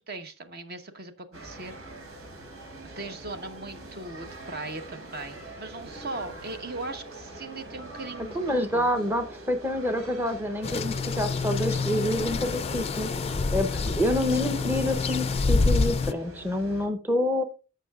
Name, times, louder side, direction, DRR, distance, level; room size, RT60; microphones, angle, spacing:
voice 1, 0.1-1.8 3.0-8.9, right 2 dB, 45° right, 8 dB, 1.0 m, -39 dB
sound 1, 1.3-16.9, right 1 dB, 70° right, 3.2 m, -44 dB
voice 2, 8.2-13.1 13.5-17.4, left 1 dB, 10° right, 7 dB, 0.7 m, -27 dB
sound 2, 10.6-16.1, left 4 dB, 30° left, 0.4 m, -27 dB
15.0 x 5.6 x 2.4 m, 0.33 s
head